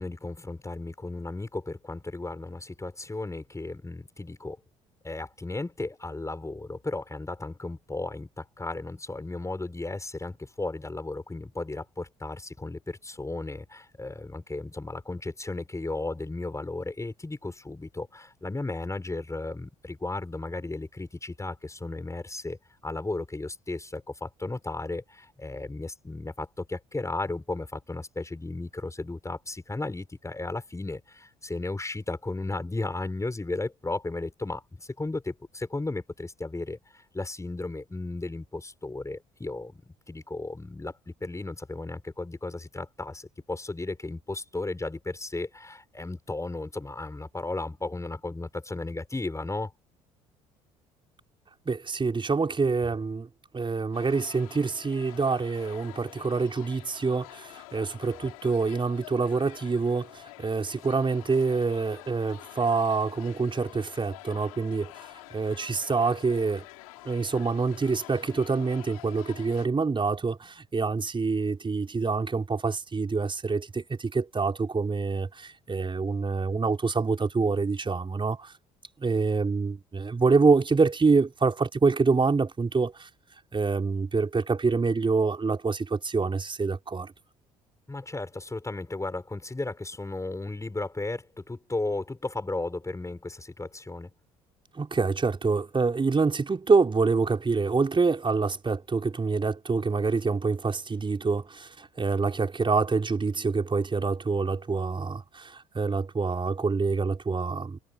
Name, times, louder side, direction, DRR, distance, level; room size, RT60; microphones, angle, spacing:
voice 1, 0.0-4.6 5.0-22.6 22.8-36.8 37.1-39.8 40.1-49.7 87.9-94.1, left 2 dB, 15° left, 7.2 m, -35 dB
voice 2, 51.7-53.3 53.5-64.9 65.3-66.6 67.0-78.5 79.0-83.1 83.5-87.1 94.7-107.8, right 4 dB, 30° right, 4.8 m, -26 dB
sound 1, 53.9-69.7, left 21 dB, 80° left, 5.6 m, -47 dB
hypercardioid pair, 55°, 18 cm